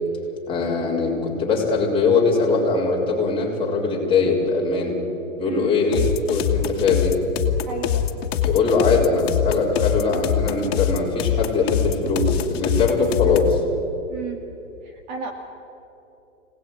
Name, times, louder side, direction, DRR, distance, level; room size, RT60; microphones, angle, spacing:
voice 1, 0.5-5.0 5.4-6.0 6.3-7.2 8.4-13.6, left 4 dB, 15° left, -3 dB, 4.7 m, -21 dB
voice 2, 5.4-5.8 7.7-8.0 14.1-14.4 14.8-15.3, right 5 dB, 35° right, 3 dB, 2.4 m, -32 dB
sound 1, 5.9-13.6, left 10 dB, 50° left, 2.4 m, -23 dB
26.0 x 19.0 x 9.4 m, 2.9 s
hypercardioid pair, 160°, 38 cm